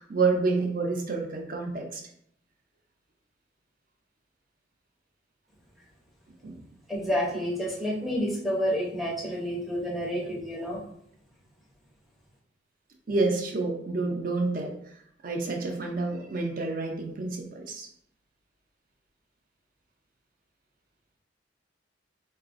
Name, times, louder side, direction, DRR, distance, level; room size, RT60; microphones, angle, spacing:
voice 1, 0.0-2.0 6.4-6.6 13.1-14.7 15.2-17.9, right 3 dB, 45° right, 2 dB, 0.5 m, -28 dB
voice 2, 6.9-10.8, equal, ahead, -3 dB, 0.6 m, -29 dB
3.9 x 2.3 x 2.5 m, 0.70 s
head